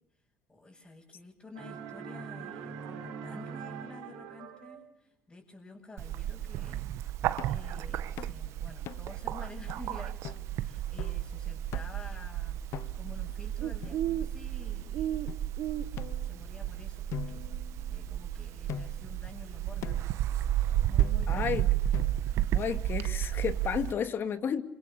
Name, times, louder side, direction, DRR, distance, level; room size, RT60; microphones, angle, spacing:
voice 1, 0.5-12.6 12.9-15.4 16.2-17.6 17.9-20.1 20.8-21.8 22.2-22.4, left 2 dB, 15° left, -4 dB, 7.0 m, -50 dB
sound 1, 1.5-4.9, right 6 dB, 90° right, 4.6 m, -42 dB
Bird, 6.0-23.9, right 12 dB, 65° right, 1.4 m, -32 dB
sound 2, 7.4-7.7 8.2-8.4 8.9-9.2 9.7-9.8 10.2-10.5 11.0-11.3 11.7-12.1 12.7-13.2 13.8-14.5 15.3-15.4 16.0-16.7 17.1-18.2 18.7-19.1 19.8-20.2 21.0-21.4 21.9-22.4, left 10 dB, 60° left, 0.9 m, -43 dB
voice 2, 21.3-21.7 22.5-24.6, left 7 dB, 45° left, 10 dB, 2.6 m, -32 dB
27.0 x 26.0 x 7.0 m, 0.76 s
cardioid pair, 110°, 5 cm